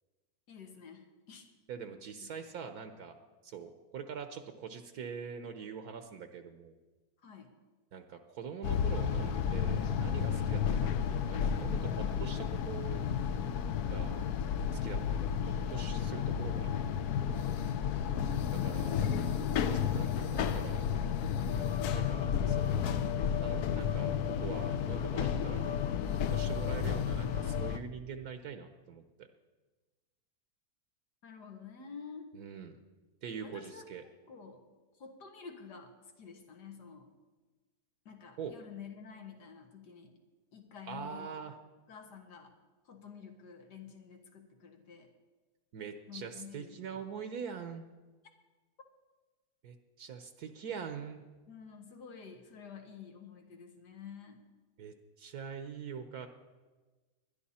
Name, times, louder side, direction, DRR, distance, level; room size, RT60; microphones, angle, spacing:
voice 1, 0.5-1.5 2.2-2.3 7.2-7.5 17.2-17.6 31.2-32.3 33.4-34.6 35.0-37.1 38.1-40.1 40.5-41.3 41.9-42.5 42.9-45.1 46.1-47.0 51.5-54.4, left 6 dB, 90° left, 4 dB, 2.1 m, -50 dB
voice 2, 1.7-3.1 3.4-6.7 7.9-13.0 13.8-14.2 14.8-15.4 15.7-16.7 18.3-19.5 19.7-20.9 21.6-22.8 23.4-25.7 26.3-29.3 32.3-32.8 33.2-34.0 38.4-38.5 40.9-41.6 45.7-47.8 49.6-51.2 54.8-56.3, right 6 dB, 70° right, 8 dB, 1.3 m, -44 dB
sound 1, 8.6-27.8, left 8 dB, 75° left, 1.2 m, -32 dB
21.0 x 11.0 x 4.3 m, 1.3 s
omnidirectional pair, 1.7 m